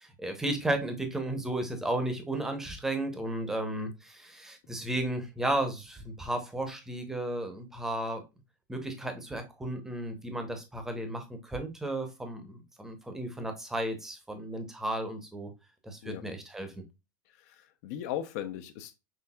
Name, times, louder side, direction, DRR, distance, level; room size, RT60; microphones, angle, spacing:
voice 1, 0.0-8.2 8.7-15.5 15.8-16.8, right 1 dB, 5° right, 0.7 m, -34 dB
voice 2, 17.4-18.9, left 11 dB, 55° left, 0.6 m, -37 dB
5.9 x 3.3 x 2.3 m
supercardioid pair, 165°, 10 cm